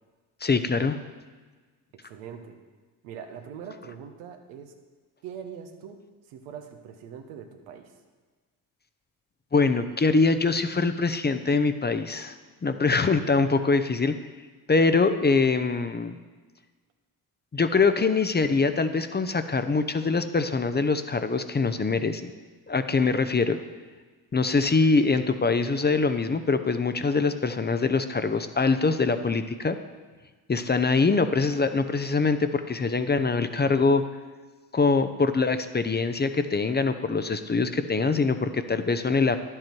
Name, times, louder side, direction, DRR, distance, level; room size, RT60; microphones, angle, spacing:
voice 1, 0.4-1.0 9.5-12.3 12.6-14.2 14.7-16.2 17.5-22.3 22.7-23.6 24.3-29.8 30.5-34.0 34.7-39.4, left 4 dB, 20° left, 10 dB, 0.7 m, -23 dB
voice 2, 2.0-2.6 3.0-4.8 5.2-7.9, right 7 dB, 85° right, 5 dB, 1.1 m, -42 dB
10.5 x 7.9 x 4.6 m, 1.4 s
hypercardioid pair, 55°, 46 cm